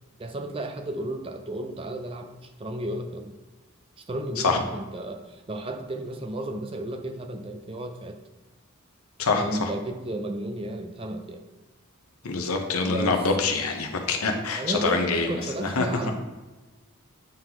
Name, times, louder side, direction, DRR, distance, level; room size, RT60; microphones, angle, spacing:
voice 1, 0.2-3.3 4.1-8.2 9.3-11.4 12.8-13.3 14.2-16.1, right 1 dB, 25° right, 5 dB, 0.4 m, -33 dB
voice 2, 9.2-9.7 12.2-15.3 15.6-16.1, left 4 dB, 80° left, 4 dB, 0.8 m, -25 dB
9.0 x 3.9 x 2.9 m, 1.2 s
head